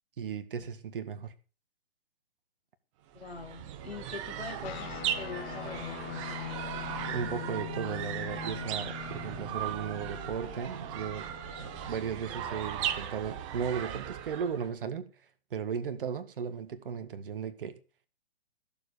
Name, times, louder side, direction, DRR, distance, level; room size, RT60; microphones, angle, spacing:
voice 1, 0.2-1.3 7.0-11.3 11.6-15.1 15.5-17.8, right 7 dB, 55° right, 1.8 m, -36 dB
voice 2, 3.1-6.7, left 5 dB, 70° left, 3.0 m, -43 dB
sound 1, 3.1-14.7, right 9 dB, 30° right, 1.2 m, -38 dB
Guitar, 4.6-13.4, left 13 dB, 30° left, 1.8 m, -43 dB
15.0 x 7.3 x 6.6 m
figure-of-eight pair, 125°, 33 cm